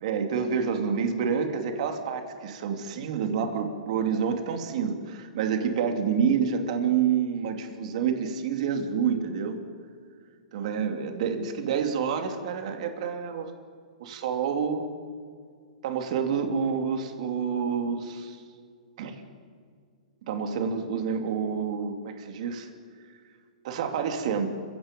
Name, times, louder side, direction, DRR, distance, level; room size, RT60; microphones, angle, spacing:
voice 1, 0.0-9.6 10.5-13.5 14.0-14.9 15.8-18.4 19.0-19.2 20.3-22.7 23.6-24.5, right 6 dB, 55° right, 5 dB, 2.8 m, -28 dB
30.0 x 17.0 x 5.4 m, 2.1 s
hypercardioid pair, 140°, 4 cm